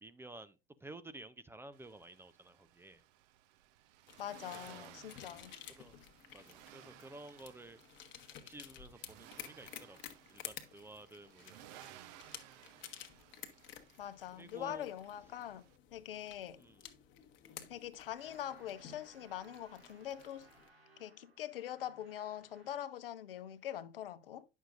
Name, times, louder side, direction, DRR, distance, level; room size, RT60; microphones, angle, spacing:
voice 1, 0.0-3.0 4.5-4.9 5.8-6.0 6.3-7.8 8.4-10.0 10.3-11.9 14.3-14.9 16.6-16.9, right 2 dB, 10° right, 0.4 m, -53 dB
Accelerating revving vroom, 1.7-15.8, right 13 dB, 50° right, 0.7 m, -59 dB
sound 1, 4.1-20.7, left 10 dB, 40° left, 1.0 m, -53 dB
voice 2, 4.2-5.5 14.0-15.6 15.9-16.6 17.7-20.5 21.0-24.5, left 11 dB, 70° left, 0.7 m, -43 dB
sound 2, 18.2-23.0, right 3 dB, 80° right, 1.9 m, -63 dB
10.0 x 6.3 x 2.5 m
figure-of-eight pair, 75°, 30 cm